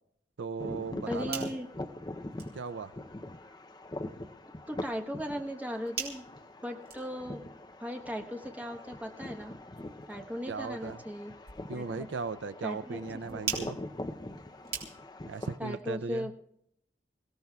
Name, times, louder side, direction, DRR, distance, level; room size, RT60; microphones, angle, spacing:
voice 1, 0.4-1.5 2.5-2.9 10.5-11.0 11.7-13.8 15.3-16.3, right 4 dB, 80° right, 13 dB, 0.5 m, -37 dB
sound 1, 0.6-15.6, left 1 dB, 20° left, 0.6 m, -43 dB
voice 2, 1.1-1.7 4.7-6.2 6.6-7.5 7.8-9.5 10.1-11.3 11.7-12.1 12.6-13.0 13.3-13.4 15.6-16.3, equal, 10° right, 2 dB, 1.1 m, -37 dB
sound 2, 1.1-15.3, right 6 dB, 55° right, 3.3 m, -45 dB
27.5 x 16.5 x 2.3 m, 0.75 s
head